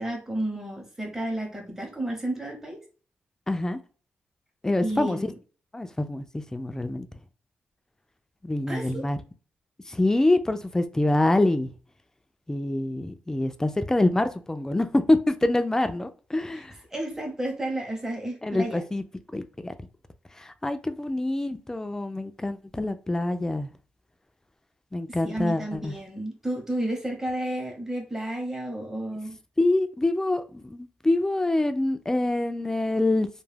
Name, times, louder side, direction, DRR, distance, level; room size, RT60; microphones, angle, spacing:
voice 1, 0.0-2.8 4.8-5.3 8.7-9.0 16.5-16.6 16.9-18.8 25.1-29.4, right 1 dB, 10° right, 0.7 m, -32 dB
voice 2, 3.5-3.8 4.6-5.3 5.7-7.1 8.4-9.2 9.9-11.7 12.5-16.7 18.4-19.0 19.3-19.9 20.3-23.7 24.9-25.9 29.6-33.3, left 2 dB, 15° left, 0.3 m, -25 dB
2.2 x 2.1 x 3.2 m
cardioid pair, 85°, 4 cm